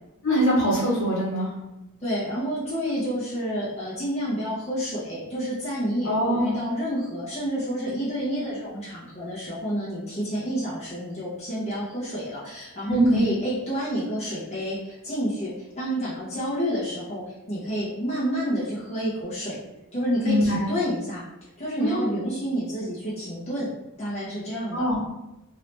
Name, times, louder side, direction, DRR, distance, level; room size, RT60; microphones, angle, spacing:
voice 1, 0.2-1.5 6.0-6.5 12.8-13.2 20.2-20.6 21.8-22.1 24.7-25.0, equal, 65° left, -6 dB, 1.5 m, -22 dB
voice 2, 2.0-19.6 19.9-21.2 21.6-23.7 24.0-24.9, equal, 30° left, -9 dB, 1.0 m, -29 dB
3.0 x 2.8 x 3.2 m, 0.95 s
head